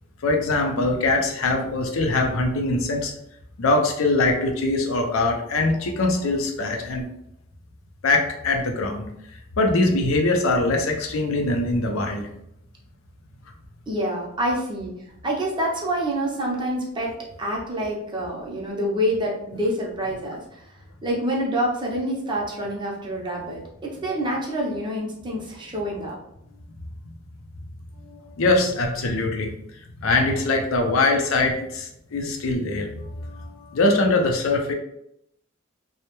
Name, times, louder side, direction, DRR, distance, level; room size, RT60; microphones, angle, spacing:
voice 1, 0.2-3.1 3.6-7.0 8.0-9.1 9.6-12.3 28.4-29.5 30.0-32.9 33.3-34.7, left 2 dB, 75° left, 2 dB, 0.5 m, -22 dB
voice 2, 13.9-14.9 15.2-17.1 17.4-20.7 21.0-26.2, equal, 20° right, -3 dB, 0.5 m, -27 dB
2.2 x 2.0 x 2.9 m, 0.78 s
head